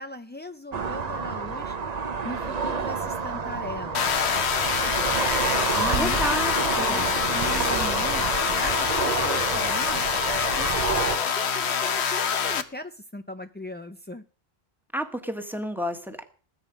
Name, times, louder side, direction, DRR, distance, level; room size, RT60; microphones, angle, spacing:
voice 1, 0.0-1.8 2.2-5.2 5.8-8.2 8.6-14.2, left 1 dB, 15° left, 7 dB, 0.4 m, -38 dB
sound 1, 0.7-11.2, right 5 dB, 40° right, 0.9 m, -29 dB
sound 2, 3.9-12.6, left 7 dB, 90° left, 1.3 m, -26 dB
voice 2, 6.0-7.1 14.9-16.2, equal, ahead, 7 dB, 1.5 m, -31 dB
20.0 x 9.1 x 5.2 m, 0.41 s
omnidirectional pair, 1.1 m